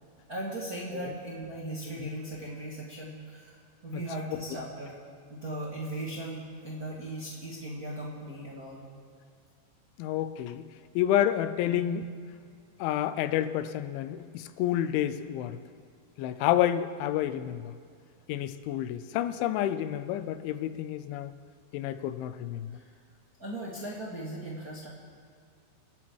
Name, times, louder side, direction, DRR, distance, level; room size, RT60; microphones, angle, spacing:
voice 1, 0.3-3.5 3.8-4.9 5.3-8.9 11.6-11.8 23.4-24.9, right 1 dB, 40° right, -5 dB, 1.3 m, -38 dB
voice 2, 10.0-10.6 11.0-12.1 12.8-15.6 16.2-17.7 18.3-21.3 21.7-22.7, left 11 dB, 90° left, 13 dB, 3.1 m, -29 dB
26.5 x 10.5 x 4.7 m, 2.3 s
omnidirectional pair, 5.3 m